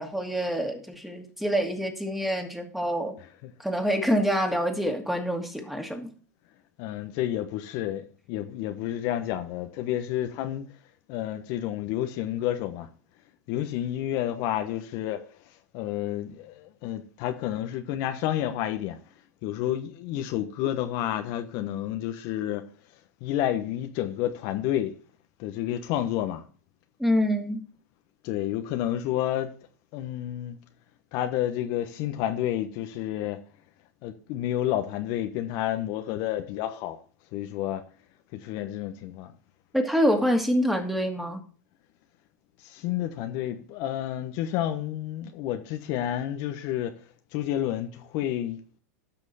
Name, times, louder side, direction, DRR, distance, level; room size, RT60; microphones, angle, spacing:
voice 1, 0.0-3.1 3.6-6.1 27.0-27.6 39.7-41.4, equal, ahead, 2.5 m, -26 dB
voice 2, 6.8-10.7 11.1-12.9 13.5-19.0 19.4-22.6 23.2-24.9 25.4-26.4 28.2-29.5 29.9-30.6 31.1-33.4 34.0-37.0 37.3-37.8 38.3-39.3 42.6-47.0 47.3-48.6, left 12 dB, 50° left, 1.2 m, -30 dB
14.5 x 6.2 x 4.3 m
hypercardioid pair, 105°, 9 cm